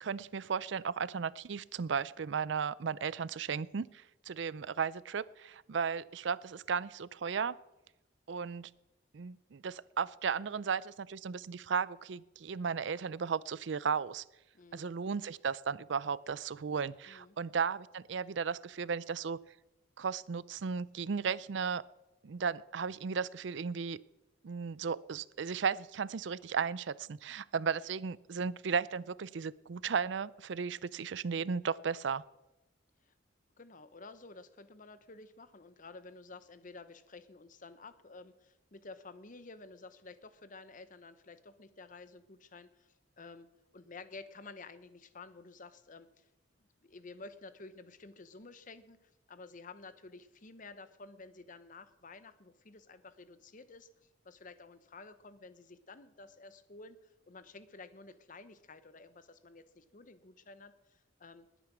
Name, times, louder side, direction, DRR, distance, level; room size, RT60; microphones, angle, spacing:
voice 1, 0.0-7.6 8.3-8.7 9.1-14.2 14.7-19.4 20.0-21.8 22.2-24.0 24.4-32.2, right 6 dB, 65° right, 19 dB, 0.5 m, -35 dB
voice 2, 14.5-14.9 17.1-17.4 33.0-33.1 33.6-43.5 43.7-46.3 46.8-53.9 54.2-61.5, left 3 dB, 45° left, 13 dB, 0.9 m, -52 dB
20.5 x 9.2 x 6.1 m, 0.95 s
head